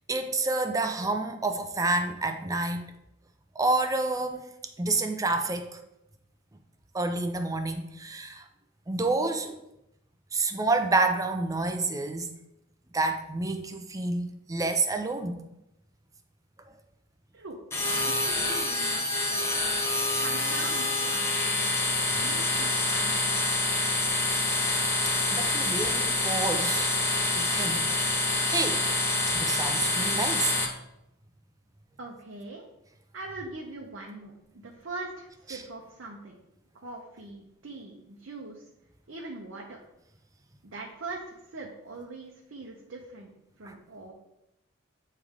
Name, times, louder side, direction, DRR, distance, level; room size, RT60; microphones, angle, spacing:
voice 1, 0.1-2.8 3.6-4.5 4.8-5.7 6.9-8.5 8.9-9.6 10.3-12.3 12.9-15.4 25.3-26.9 27.3-27.8 28.5-28.8 29.3-30.5 35.5-35.6 43.7-43.8, right 3 dB, 15° right, 6 dB, 0.5 m, -28 dB
sound 1, 17.7-30.7, left 2 dB, 15° left, 0.9 m, -27 dB
voice 2, 18.0-19.7 20.2-21.7 22.2-23.6 32.0-32.7 33.1-36.4 36.7-38.7 39.1-39.8 40.7-43.3 43.6-44.1, right 2 dB, 70° right, -2 dB, 0.8 m, -42 dB
8.8 x 3.3 x 3.6 m, 0.86 s
head